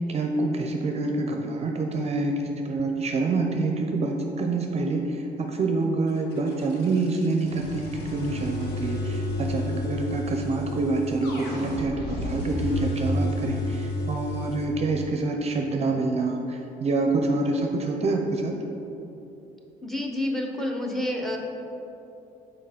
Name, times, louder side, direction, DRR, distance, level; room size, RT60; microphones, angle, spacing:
voice 1, 0.0-18.6, right 3 dB, 40° right, 3 dB, 0.5 m, -27 dB
sound 1, 6.1-14.7, left 1 dB, 75° left, 1.1 m, -31 dB
voice 2, 19.8-21.4, left 1 dB, ahead, 2 dB, 0.8 m, -28 dB
5.5 x 4.3 x 5.0 m, 2.9 s
cardioid pair, 110°, 17 cm